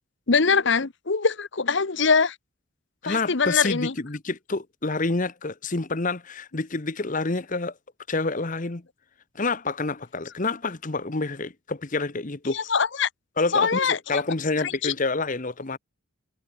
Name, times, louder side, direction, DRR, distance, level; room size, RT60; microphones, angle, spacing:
voice 1, 0.3-2.3 3.0-3.9 12.5-13.1 13.5-14.2 14.6-14.9, left 5 dB, 60° left, 1.0 m, -23 dB
voice 2, 3.0-7.7 8.1-8.8 9.4-12.6 13.4-15.8, left 3 dB, 40° left, 1.1 m, -28 dB
head